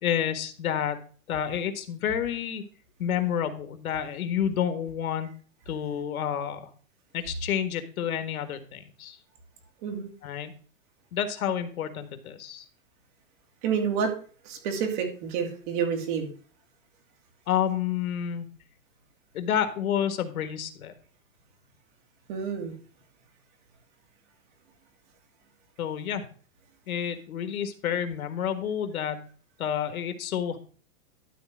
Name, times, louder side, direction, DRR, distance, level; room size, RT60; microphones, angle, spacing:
voice 1, 0.0-1.0 1.3-2.6 3.0-5.3 5.7-6.7 7.1-9.2 10.2-10.5 11.1-12.6 17.5-18.5 19.3-20.9 25.8-26.2 26.9-29.2 29.6-30.6, left 9 dB, 80° left, 9 dB, 1.7 m, -29 dB
voice 2, 13.6-14.1 14.4-16.3 22.3-22.7, right 6 dB, 35° right, 3 dB, 2.5 m, -29 dB
12.0 x 4.3 x 6.1 m, 0.40 s
supercardioid pair, 175°, 42 cm